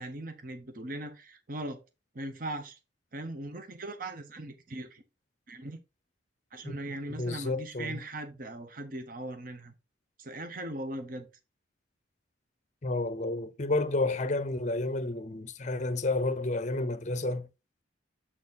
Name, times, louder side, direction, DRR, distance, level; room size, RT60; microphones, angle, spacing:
voice 1, 0.0-1.8 2.1-2.8 3.1-5.0 5.5-5.8 6.5-9.7 10.2-11.3, right 1 dB, 45° right, 0.9 m, -39 dB
voice 2, 7.2-8.0 12.8-17.5, left 2 dB, 35° left, 0.6 m, -30 dB
7.6 x 4.0 x 4.0 m
head